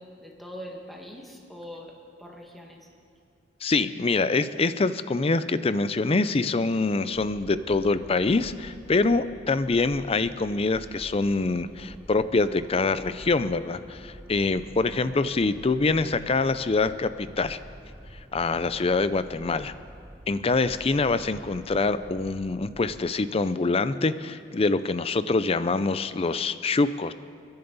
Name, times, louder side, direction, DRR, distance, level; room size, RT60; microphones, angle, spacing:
voice 1, 0.0-2.9 14.9-15.2 22.0-22.1, equal, ahead, -1 dB, 1.8 m, -43 dB
voice 2, 3.6-17.6 18.3-19.7 20.3-27.1, left 3 dB, 30° left, 13 dB, 0.5 m, -25 dB
sound 1, 7.1-23.0, right 1 dB, 15° right, 0.6 m, -47 dB
29.5 x 10.5 x 4.1 m, 2.3 s
head